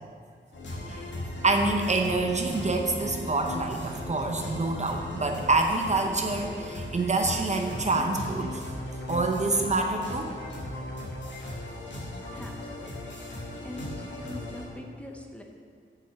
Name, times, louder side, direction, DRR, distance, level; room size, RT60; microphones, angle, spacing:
sound 1, 0.5-14.7, left 1 dB, 65° left, 1.9 m, -37 dB
voice 1, 1.4-8.7 9.1-10.3, right 3 dB, 35° right, 3 dB, 0.7 m, -26 dB
Piano, 2.5-6.2, right 2 dB, 10° right, 1.3 m, -43 dB
voice 2, 12.3-13.1 13.6-15.4, left 1 dB, 5° left, 1 dB, 0.9 m, -43 dB
7.4 x 6.2 x 7.6 m, 2.1 s
wide cardioid pair, 150°, 20 cm